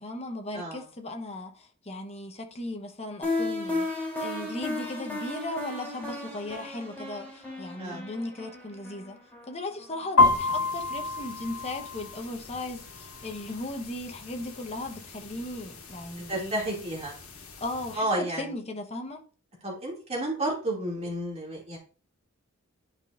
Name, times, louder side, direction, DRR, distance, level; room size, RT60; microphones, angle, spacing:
voice 1, 0.0-16.6 17.6-19.2, left 2 dB, 30° left, 1.0 m, -37 dB
sound 1, 3.2-10.0, left 2 dB, 10° left, 3.1 m, -34 dB
sound 2, 10.2-18.0, left 3 dB, 85° left, 1.5 m, -30 dB
voice 2, 16.3-17.1 17.9-18.5 19.6-21.8, right 1 dB, 30° right, 2.4 m, -31 dB
10.5 x 5.0 x 2.5 m
head